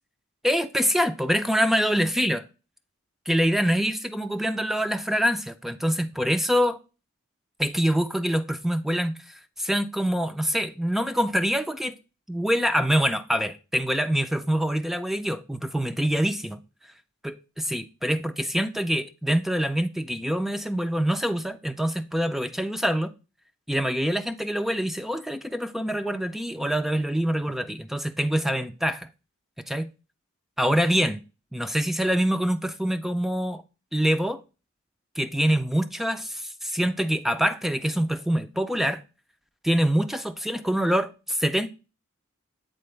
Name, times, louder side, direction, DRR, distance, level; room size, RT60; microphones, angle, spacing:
voice 1, 0.4-2.4 3.3-6.8 7.6-9.2 9.6-11.9 12.3-16.6 17.2-17.3 17.7-23.1 23.7-29.1 29.7-29.9 30.6-31.2 31.5-33.6 33.9-34.4 35.2-39.0 39.6-41.7, equal, ahead, 0.3 m, -25 dB
7.6 x 4.3 x 3.2 m
head